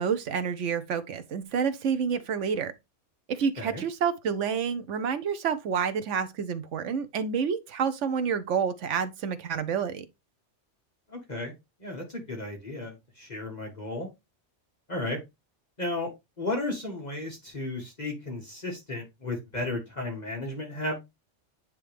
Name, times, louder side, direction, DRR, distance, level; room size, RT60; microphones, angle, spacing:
voice 1, 0.0-2.7 3.3-10.0, right 6 dB, 90° right, 1.1 m, -29 dB
voice 2, 11.1-11.5 11.8-14.1 14.9-15.2 15.8-16.1 16.4-21.0, left 2 dB, 35° left, 1.5 m, -34 dB
9.3 x 3.1 x 3.3 m
omnidirectional pair, 1.2 m